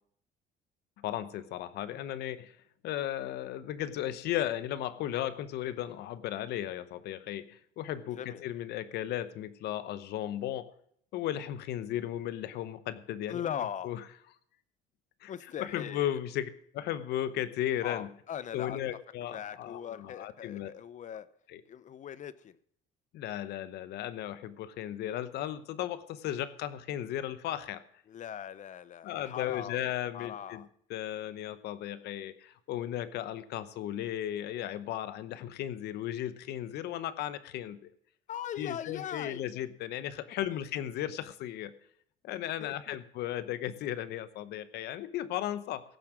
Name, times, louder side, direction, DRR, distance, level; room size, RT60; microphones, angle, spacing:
voice 1, 1.0-2.6 2.8-10.7 11.1-13.4 13.8-14.0 15.2-15.3 15.6-18.1 18.5-20.7 21.5-21.6 23.1-27.8 29.0-30.6 30.9-37.9 38.6-41.7 42.2-45.8, left 12 dB, 80° left, 15 dB, 0.9 m, -35 dB
voice 2, 8.0-8.4 13.3-14.0 15.3-16.2 17.8-18.8 19.2-21.3 21.7-22.6 28.1-29.8 30.1-30.7 38.3-39.4 40.5-40.6 42.6-43.0, left 9 dB, 45° left, 17 dB, 0.7 m, -40 dB
16.5 x 7.3 x 6.1 m, 0.66 s
cardioid pair, 110°, 17 cm